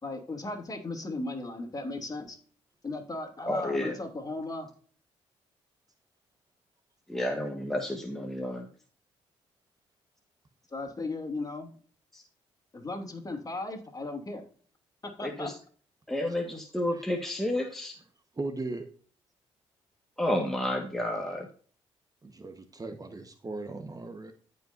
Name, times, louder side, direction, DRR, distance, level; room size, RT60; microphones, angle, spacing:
voice 1, 0.0-2.4 2.8-4.7 10.7-11.7 12.7-14.4 15.2-15.5, left 2 dB, 30° left, 4 dB, 2.7 m, -36 dB
voice 2, 3.5-3.9 7.1-8.7 12.1-12.2 15.2-15.5 16.1-17.9 20.2-21.5, left 1 dB, 5° left, 1 dB, 1.5 m, -31 dB
voice 3, 18.4-18.9 22.2-24.3, right 3 dB, 30° right, 7 dB, 1.2 m, -38 dB
14.5 x 5.4 x 2.6 m, 0.43 s
supercardioid pair, 55°, 13 cm